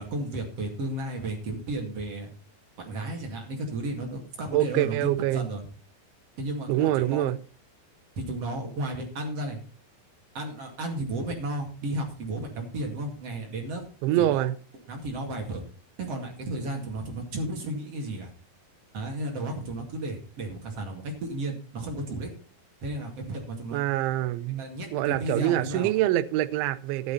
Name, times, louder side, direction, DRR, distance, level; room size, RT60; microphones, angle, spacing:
voice 1, 0.0-2.3 2.8-5.7 6.4-7.3 8.2-9.6 10.3-14.5 14.9-15.6 16.0-18.3 18.9-22.3 22.8-23.8 24.6-25.9, right 1 dB, 40° right, 2.5 m, -33 dB
voice 2, 4.5-5.4 6.7-7.4 14.0-14.5 23.7-24.7 24.9-27.1, right 14 dB, 85° right, 3.1 m, -25 dB
12.5 x 10.5 x 4.1 m
omnidirectional pair, 5.3 m